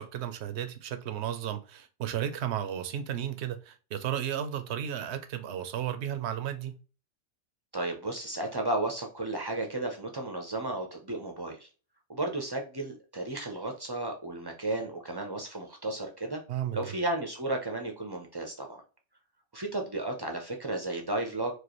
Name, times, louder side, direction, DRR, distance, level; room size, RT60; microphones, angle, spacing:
voice 1, 0.0-6.7 16.5-16.9, right 10 dB, 70° right, 0.8 m, -34 dB
voice 2, 7.7-11.7 12.1-16.4 16.7-18.8 19.5-21.5, right 2 dB, 30° right, 0.5 m, -33 dB
4.6 x 2.5 x 3.0 m
omnidirectional pair, 1.2 m